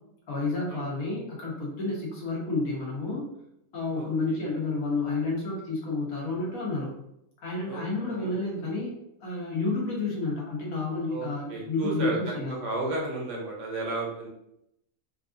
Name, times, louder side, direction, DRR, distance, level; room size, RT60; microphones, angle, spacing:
voice 1, 0.3-3.2 3.7-6.9 7.4-8.9 9.2-12.6, left 3 dB, 70° left, -3 dB, 1.4 m, -30 dB
voice 2, 3.9-4.4 7.7-8.3 11.1-14.3, right 2 dB, 60° right, -1 dB, 1.0 m, -33 dB
3.9 x 2.4 x 2.5 m, 0.80 s
omnidirectional pair, 1.5 m